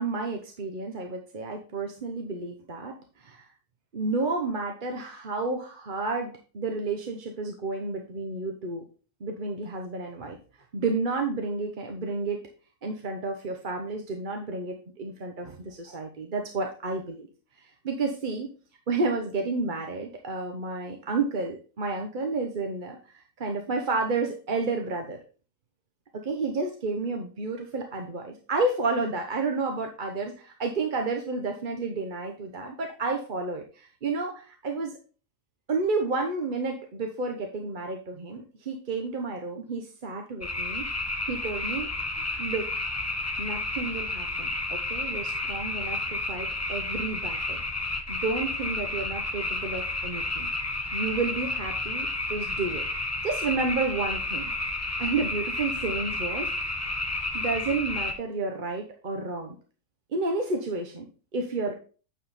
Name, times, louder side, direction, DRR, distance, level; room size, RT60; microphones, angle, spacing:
voice 1, 0.0-3.5 3.9-8.9 9.2-10.4 10.7-12.4 12.8-17.3 17.6-18.5 18.9-25.2 26.1-34.9 35.7-40.9 41.3-41.9 42.4-42.7 43.4-47.6 48.1-50.5 50.9-52.9 53.2-54.5 55.0-56.5 57.3-59.6 60.1-61.7, right 3 dB, 40° right, 3 dB, 0.9 m, -31 dB
sound 1, 40.4-58.1, left 2 dB, 15° left, 0.5 m, -31 dB
9.0 x 5.0 x 4.1 m, 0.37 s
omnidirectional pair, 1.6 m